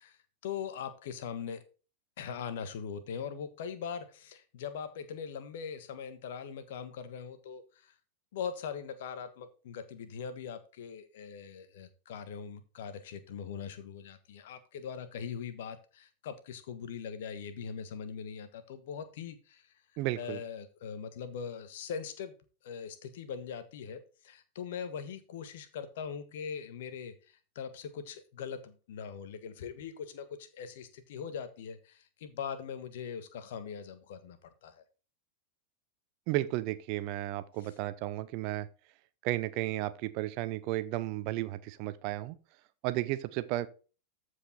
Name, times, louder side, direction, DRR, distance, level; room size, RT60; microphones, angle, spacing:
voice 1, 0.0-1.6 2.2-7.9 8.3-19.7 20.2-22.3 22.6-34.8 37.6-37.7, left 7 dB, 55° left, 1.4 m, -41 dB
voice 2, 20.0-20.4 36.3-38.7 39.2-42.4 42.8-43.7, right 16 dB, 45° right, 0.7 m, -33 dB
14.0 x 4.9 x 4.1 m
figure-of-eight pair, 90°, 0 cm